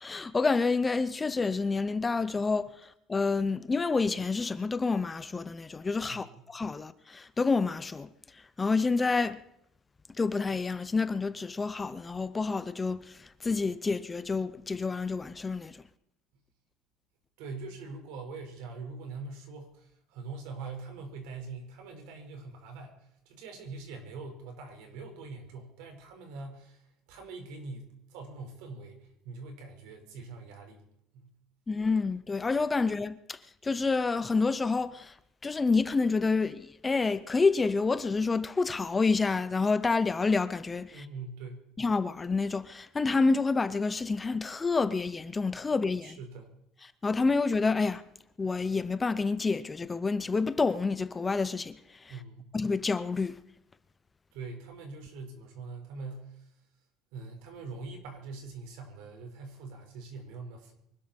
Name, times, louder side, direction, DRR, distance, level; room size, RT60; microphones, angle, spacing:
voice 1, 0.0-2.7 3.1-8.1 8.6-9.4 10.2-13.0 13.4-15.8 31.7-33.4 33.6-35.1 35.4-41.1 41.8-46.2 47.0-48.0 48.4-51.8 52.5-53.4, left 4 dB, 15° left, 0.5 m, -28 dB
voice 2, 6.1-6.5 17.4-30.8 31.1-31.3 40.9-41.7 46.0-46.5 52.1-52.5 54.3-56.5 57.1-60.7, right 4 dB, 80° right, 4.9 m, -43 dB
24.5 x 12.5 x 4.5 m
cardioid pair, 175°, 0 cm